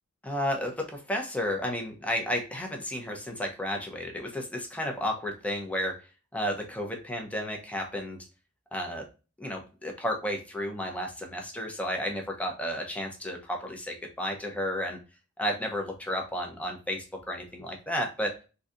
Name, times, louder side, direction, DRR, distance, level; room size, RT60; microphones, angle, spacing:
voice 1, 0.2-6.0 6.3-8.3 8.7-9.1 9.4-15.0 15.4-18.3, equal, 5° left, 2 dB, 0.6 m, -32 dB
3.8 x 2.7 x 2.4 m, 0.33 s
head